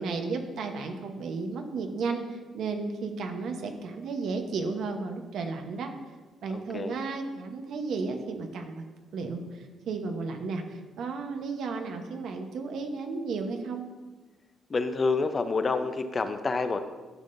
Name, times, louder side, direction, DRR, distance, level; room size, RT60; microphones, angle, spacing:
voice 1, 0.0-5.9 6.4-8.9 9.1-13.9, right 4 dB, 70° right, 5 dB, 0.9 m, -33 dB
voice 2, 6.5-7.0 14.7-16.8, left 4 dB, 35° left, 8 dB, 0.6 m, -28 dB
12.5 x 5.6 x 2.6 m, 1.3 s
cardioid pair, 90°, 0 cm